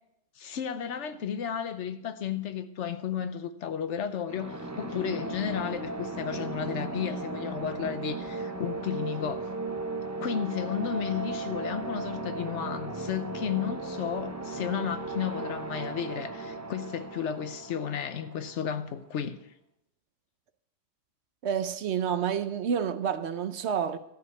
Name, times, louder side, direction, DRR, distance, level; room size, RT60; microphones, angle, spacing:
voice 1, 0.4-9.5 10.2-19.4, left 8 dB, 70° left, 1.0 m, -33 dB
sound 1, 4.3-19.0, right 2 dB, 25° right, 0.4 m, -36 dB
voice 2, 21.4-24.0, right 8 dB, 65° right, 0.9 m, -29 dB
13.0 x 5.2 x 8.1 m
omnidirectional pair, 1.3 m